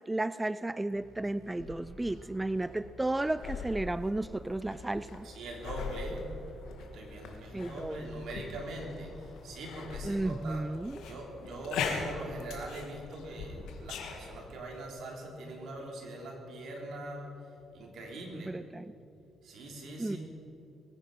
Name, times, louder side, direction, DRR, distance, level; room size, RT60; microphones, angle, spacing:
voice 1, 0.1-5.3 7.5-8.1 10.0-11.0 18.4-18.9 20.0-20.2, right 2 dB, 15° right, 15 dB, 0.3 m, -33 dB
sound 1, 0.9-12.2, left 2 dB, 50° left, 3.6 m, -55 dB
sound 2, 1.6-14.4, left 5 dB, 85° left, 1.8 m, -42 dB
voice 2, 5.2-6.2 6.8-10.6 11.0-17.3 17.7-18.5 19.4-20.2, right 1 dB, 70° right, 0 dB, 3.5 m, -42 dB
21.0 x 9.7 x 5.7 m, 2.9 s
cardioid pair, 90°, 0 cm